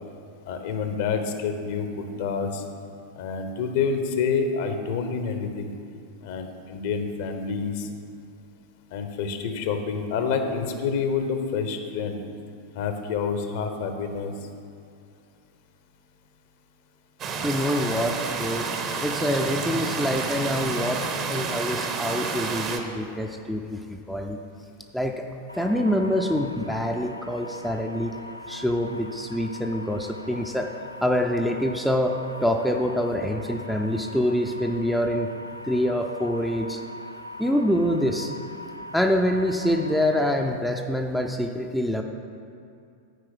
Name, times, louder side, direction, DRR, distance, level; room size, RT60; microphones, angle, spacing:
voice 1, 0.5-2.6 3.1-5.7 6.2-7.9 8.9-12.2 12.7-14.3, left 5 dB, 50° left, 6 dB, 0.8 m, -28 dB
sound 1, 17.2-22.8, right 4 dB, 35° right, 0.8 m, -29 dB
voice 2, 17.4-18.7 19.0-24.4 24.9-25.2 25.5-28.2 28.5-30.7 31.0-35.3 35.6-36.8 37.4-38.3 38.9-42.0, equal, ahead, 2 dB, 0.5 m, -25 dB
sound 2, 25.5-40.5, left 2 dB, 90° right, 0.3 m, -41 dB
9.3 x 4.8 x 5.9 m, 2.5 s
figure-of-eight pair, 90°, 0 cm